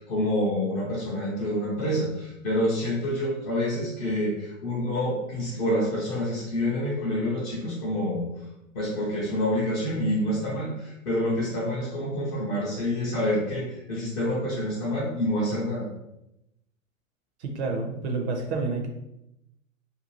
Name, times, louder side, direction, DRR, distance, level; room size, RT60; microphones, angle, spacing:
voice 1, 0.0-8.3 8.7-15.9, left 1 dB, 20° left, -6 dB, 0.4 m, -27 dB
voice 2, 17.4-18.9, right 3 dB, 55° right, 3 dB, 0.7 m, -29 dB
2.7 x 2.2 x 2.9 m, 0.87 s
hypercardioid pair, 125°, 40 cm